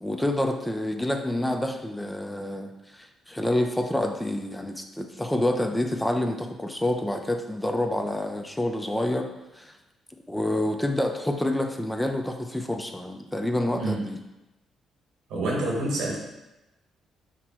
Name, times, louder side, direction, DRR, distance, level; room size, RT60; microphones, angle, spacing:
voice 1, 0.0-9.3 9.5-9.7 10.3-14.2, left 1 dB, 5° left, 4 dB, 0.4 m, -28 dB
voice 2, 13.7-14.0 15.3-16.2, right 2 dB, 85° right, -2 dB, 1.3 m, -27 dB
5.9 x 2.1 x 4.2 m, 0.98 s
cardioid pair, 90°, 0 cm